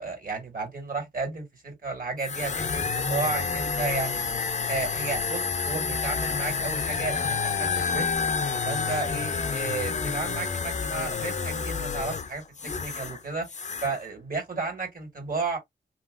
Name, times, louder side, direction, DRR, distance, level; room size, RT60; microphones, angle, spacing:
voice 1, 0.0-4.3 4.7-8.2 8.6-12.4 12.7-13.5 13.8-15.6, right 3 dB, 50° right, 1.8 m, -33 dB
sound 1, 2.2-13.2 13.5-14.0, left 5 dB, 40° left, 0.6 m, -29 dB
2.9 x 2.8 x 2.4 m
cardioid pair, 50°, 19 cm